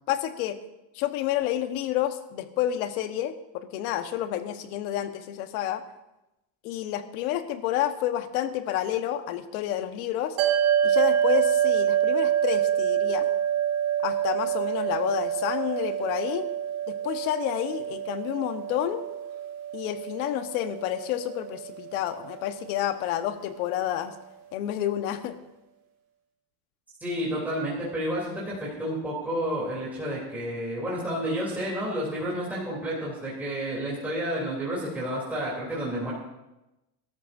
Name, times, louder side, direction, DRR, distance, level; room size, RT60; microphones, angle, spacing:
voice 1, 0.1-0.6 0.9-5.8 6.6-10.4 10.8-13.3 14.0-16.5 16.9-19.0 19.7-24.2 24.5-25.4, left 12 dB, 85° left, 8 dB, 1.4 m, -29 dB
sound 1, 10.4-22.9, right 10 dB, 90° right, 3.5 m, -27 dB
voice 2, 27.0-36.1, equal, 5° right, -7 dB, 3.3 m, -30 dB
24.0 x 13.0 x 2.7 m, 0.96 s
cardioid pair, 175°, 42 cm